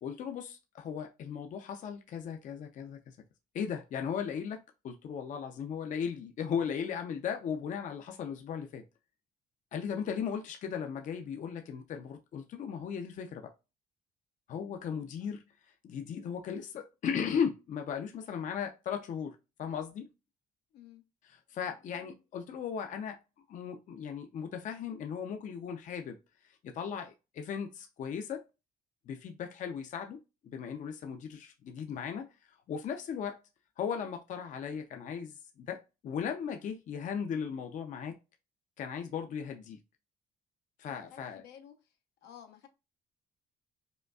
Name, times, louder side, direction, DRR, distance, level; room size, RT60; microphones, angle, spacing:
voice 1, 0.0-3.2 3.5-8.8 9.7-13.5 14.5-15.4 15.8-20.1 21.2-23.2 23.5-26.2 26.6-28.4 29.1-32.3 32.7-33.4 33.8-38.2 38.8-39.8 40.8-41.4, left 7 dB, 50° left, 0.5 m, -37 dB
voice 2, 40.9-41.7 42.2-42.7, left 9 dB, 80° left, 0.8 m, -53 dB
5.1 x 2.3 x 2.3 m
cardioid pair, 110°, 17 cm